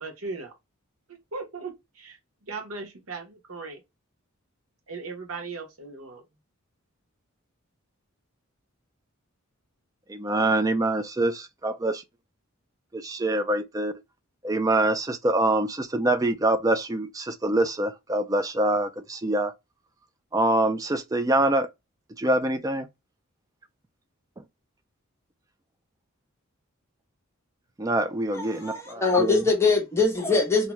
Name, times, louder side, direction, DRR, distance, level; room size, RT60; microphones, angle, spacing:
voice 1, 0.0-0.5 1.1-2.2 2.4-3.8 4.9-6.2, right 4 dB, 75° right, 1.1 m, -38 dB
voice 2, 10.1-12.0 12.9-13.9 14.4-19.5 20.3-21.7 22.2-22.9 27.8-29.4, right 2 dB, 15° right, 0.4 m, -25 dB
voice 3, 28.3-30.7, left 4 dB, 10° left, 0.8 m, -23 dB
2.7 x 2.2 x 3.0 m
head